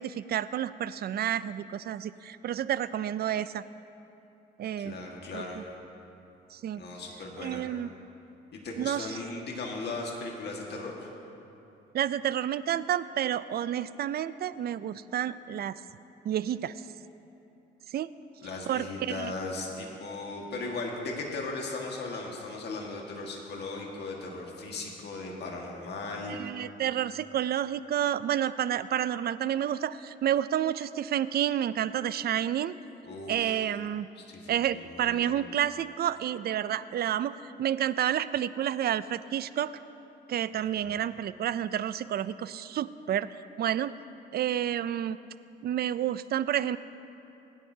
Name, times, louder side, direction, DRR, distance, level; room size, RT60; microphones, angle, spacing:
voice 1, 0.0-3.6 4.6-4.9 5.3-5.6 6.5-6.8 7.4-7.9 8.8-9.2 11.9-15.8 16.2-16.7 17.9-18.1 18.7-19.3 26.3-32.7 33.3-34.1 34.5-39.8 40.3-43.3 43.6-43.9 44.3-45.2 45.6-46.8, right 10 dB, 50° right, 15 dB, 0.4 m, -30 dB
voice 2, 4.8-5.6 6.7-7.6 8.5-11.1 18.4-26.4 33.1-33.6 34.2-35.3 40.7-41.0, left 3 dB, 60° left, -1 dB, 1.7 m, -37 dB
20.5 x 10.0 x 2.8 m, 2.8 s
cardioid pair, 90°, 20 cm